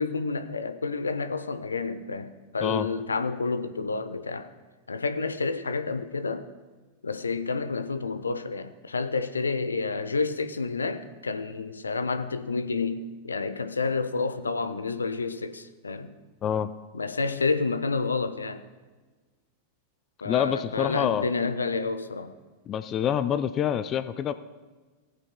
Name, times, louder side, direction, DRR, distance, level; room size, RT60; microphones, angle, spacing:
voice 1, 0.0-4.5 4.9-6.5 7.0-16.2 16.9-18.6 20.2-22.3, left 4 dB, 75° left, 0.6 m, -29 dB
voice 2, 20.2-21.3 22.7-24.3, left 9 dB, 30° left, 0.4 m, -26 dB
18.5 x 8.3 x 2.2 m
figure-of-eight pair, 90°, 0 cm